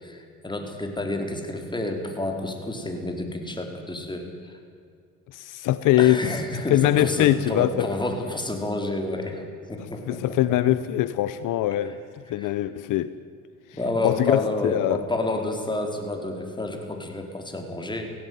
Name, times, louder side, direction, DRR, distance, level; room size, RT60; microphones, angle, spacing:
voice 1, 0.0-4.6 6.0-10.4 12.4-12.5 13.7-18.1, left 2 dB, 15° left, 3 dB, 4.2 m, -30 dB
voice 2, 5.3-6.3 6.7-7.9 9.8-13.1 14.0-15.1, left 13 dB, 75° left, 14 dB, 0.9 m, -23 dB
17.5 x 16.5 x 9.4 m, 2.4 s
supercardioid pair, 85°, 32 cm